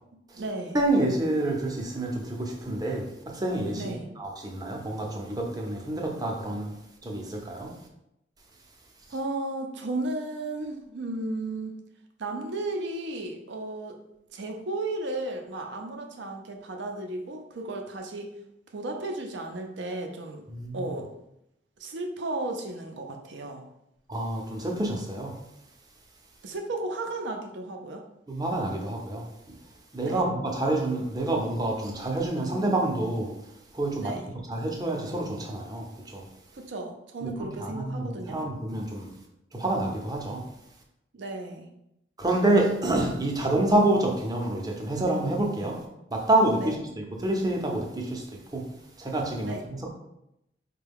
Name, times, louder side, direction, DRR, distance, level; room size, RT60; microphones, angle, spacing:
voice 1, 0.1-0.8 3.7-4.1 9.1-11.8 12.2-14.0 14.3-18.3 18.7-20.4 20.7-21.1 21.8-23.7 26.4-28.0 30.0-30.3 34.0-34.4 36.5-38.4 41.1-41.7 46.6-46.8 49.4-49.6, right 2 dB, 70° right, 4 dB, 0.5 m, -34 dB
voice 2, 0.7-6.7 7.0-7.8 20.5-20.9 24.1-25.4 28.3-29.6 29.9-33.3 33.7-36.3 37.2-39.1 39.5-40.5 42.2-48.7 49.0-49.9, right 1 dB, 20° right, 0 dB, 0.6 m, -28 dB
4.5 x 2.2 x 3.4 m, 0.83 s
head